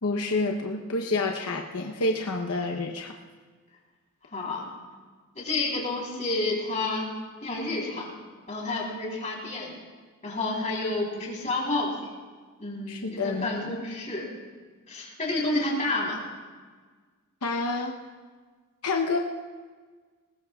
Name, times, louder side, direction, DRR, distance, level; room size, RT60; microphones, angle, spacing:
voice 1, 0.0-3.2 12.9-13.8 17.4-18.0 18.8-19.2, left 3 dB, 80° left, 2 dB, 0.9 m, -28 dB
voice 2, 4.3-4.6 5.4-7.1 7.4-8.1 8.5-9.8 10.2-12.1 12.6-14.3 14.9-16.2, left 2 dB, 30° left, -3 dB, 3.8 m, -30 dB
21.0 x 19.0 x 2.4 m, 1.5 s
head